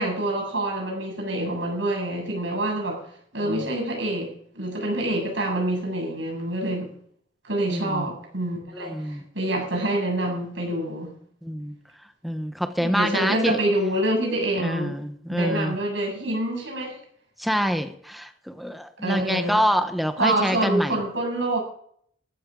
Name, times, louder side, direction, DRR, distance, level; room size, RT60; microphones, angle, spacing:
voice 1, 0.0-3.0 3.3-6.9 7.4-11.1 12.8-15.0 15.3-17.0 19.0-19.6 20.2-21.6, right 1 dB, 80° right, 1 dB, 7.7 m, -26 dB
voice 2, 7.7-8.1 8.7-9.2 11.4-11.7 12.2-13.6 14.6-15.8 17.4-21.0, equal, ahead, 7 dB, 1.1 m, -26 dB
15.5 x 13.5 x 3.8 m, 0.62 s
head